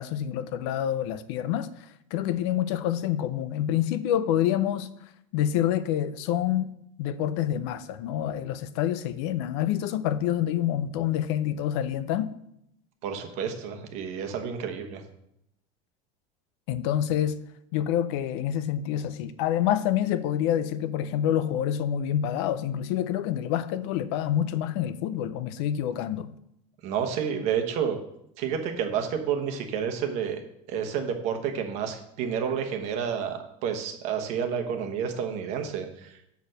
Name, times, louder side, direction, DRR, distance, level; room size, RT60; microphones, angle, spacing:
voice 1, 0.0-4.9 5.3-6.7 7.0-12.3 16.7-17.4 17.7-26.3, left 11 dB, 60° left, 0.5 m, -27 dB
voice 2, 13.0-15.0 26.8-28.0 28.4-30.4 30.7-36.3, right 7 dB, 45° right, 1.1 m, -30 dB
7.0 x 4.6 x 6.4 m
cardioid pair, 180°, 16 cm